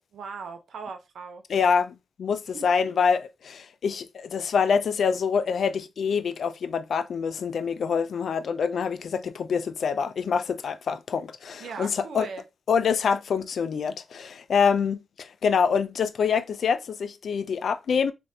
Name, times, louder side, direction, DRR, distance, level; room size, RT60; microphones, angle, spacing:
voice 1, 0.1-1.4 2.5-3.0 11.6-12.4, right 5 dB, 80° right, 0.6 m, -39 dB
voice 2, 1.5-12.3 12.7-18.1, left 6 dB, 75° left, 0.3 m, -26 dB
3.2 x 2.5 x 2.7 m
cardioid pair, 60°, 0 cm